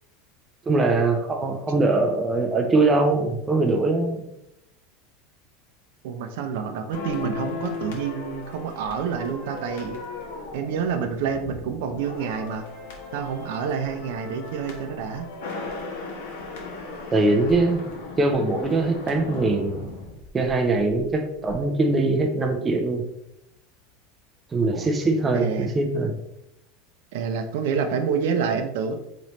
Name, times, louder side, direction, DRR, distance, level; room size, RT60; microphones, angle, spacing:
voice 1, 0.7-4.3 17.1-17.9 18.2-19.9 20.3-23.1 24.5-26.2, right 2 dB, 15° right, 4 dB, 0.4 m, -22 dB
voice 2, 6.0-10.0 10.5-12.7 13.1-15.3 24.7-24.9 25.3-25.7 27.1-28.9, right 6 dB, 70° right, 6 dB, 0.5 m, -28 dB
sound 1, 6.9-21.1 21.3-21.5, left 4 dB, 85° left, 1.2 m, -37 dB
4.1 x 3.1 x 3.0 m, 0.83 s
supercardioid pair, 160°, 0 cm